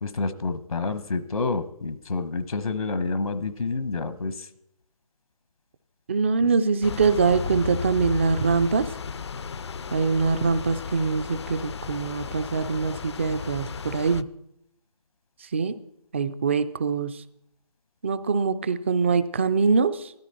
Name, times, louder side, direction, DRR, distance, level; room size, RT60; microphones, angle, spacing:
voice 1, 0.0-4.5, left 3 dB, 70° left, 12 dB, 1.1 m, -28 dB
voice 2, 6.1-8.9 9.9-14.3 15.4-15.8 16.1-17.2 18.0-20.1, right 4 dB, 20° right, 13 dB, 0.4 m, -23 dB
sound 1, 6.8-14.2, left 6 dB, 50° left, 0.5 m, -34 dB
15.5 x 13.5 x 4.2 m, 0.79 s
figure-of-eight pair, 155°, 19 cm